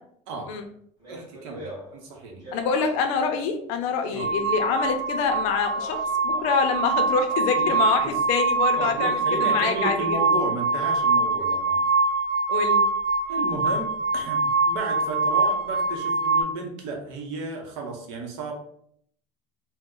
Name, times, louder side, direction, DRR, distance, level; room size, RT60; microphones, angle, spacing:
voice 1, 0.3-0.6 1.1-2.4 4.1-4.3 7.5-8.2 8.7-11.8 13.3-18.5, right 3 dB, 70° right, 2 dB, 0.9 m, -33 dB
Speech, 1.0-3.2 4.0-5.2 5.6-6.7 7.1-7.7, equal, 30° right, 1.4 m, -42 dB
voice 2, 2.5-10.2 12.5-12.8, left 5 dB, 55° left, 5 dB, 0.5 m, -26 dB
sound 1, 4.2-16.4, right 3 dB, ahead, 0.8 m, -24 dB
2.9 x 2.1 x 3.6 m, 0.65 s
cardioid pair, 175°, 14 cm